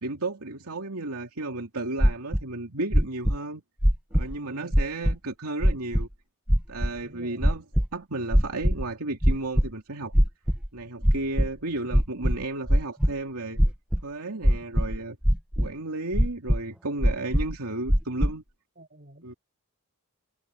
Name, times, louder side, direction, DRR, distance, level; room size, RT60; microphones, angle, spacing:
voice 1, 0.0-3.6 4.1-6.1 6.7-7.6 7.9-10.1 10.7-13.6 14.0-15.2 15.6-18.4 19.2-19.3, right 2 dB, 80° right, 2.7 m, -33 dB
sound 1, 2.0-2.4 2.9-3.4 3.8-4.4 4.7-5.2 5.6-6.1 6.5-6.9 7.4-7.9 8.3-8.8 9.2-9.7 10.1-10.7 11.0-11.5 11.9-13.1 13.6-14.0 14.4-15.0 15.2-15.7 16.1-16.6 17.0-17.5 17.9-18.3, equal, 5° right, 1.1 m, -21 dB
voice 2, 4.4-4.8 7.0-7.5 18.8-19.4, right 1 dB, 45° right, 7.8 m, -50 dB
head